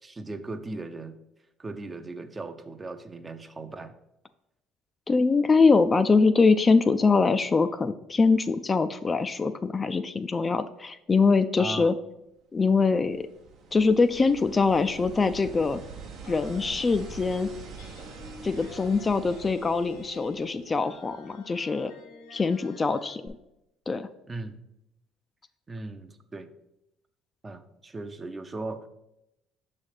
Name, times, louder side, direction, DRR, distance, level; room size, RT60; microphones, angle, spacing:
voice 1, 0.0-1.2 1.6-3.9 11.6-11.9 24.3-24.6 25.7-26.5 27.4-28.9, right 2 dB, 25° right, 9 dB, 0.6 m, -38 dB
voice 2, 5.1-11.9 12.5-13.3 13.7-15.8 16.3-17.5 18.4-21.9 22.3-23.4 23.9-24.1, left 4 dB, 30° left, 10 dB, 0.3 m, -23 dB
sound 1, 12.6-21.1 23.3-23.4, right 5 dB, 65° right, 0.8 m, -45 dB
sound 2, 16.2-23.2, left 4 dB, 85° left, 1.0 m, -49 dB
6.1 x 3.2 x 5.7 m, 0.86 s
supercardioid pair, 75°, 0 cm